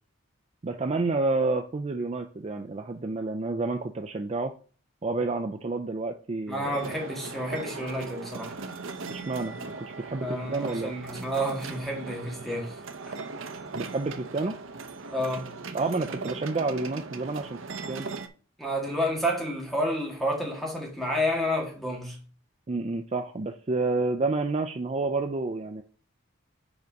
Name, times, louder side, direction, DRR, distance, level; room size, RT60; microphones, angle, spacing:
voice 1, 0.6-4.5 5.0-6.8 9.1-10.9 13.7-14.6 15.7-17.6 17.9-18.1 22.7-25.8, right 3 dB, 30° right, 0.4 m, -29 dB
voice 2, 6.5-8.6 10.2-12.8 13.1-13.2 15.1-15.5 18.6-22.2, equal, ahead, 1.8 m, -30 dB
sound 1, 6.7-18.3, right 4 dB, 65° right, 0.7 m, -39 dB
5.0 x 4.7 x 5.2 m
head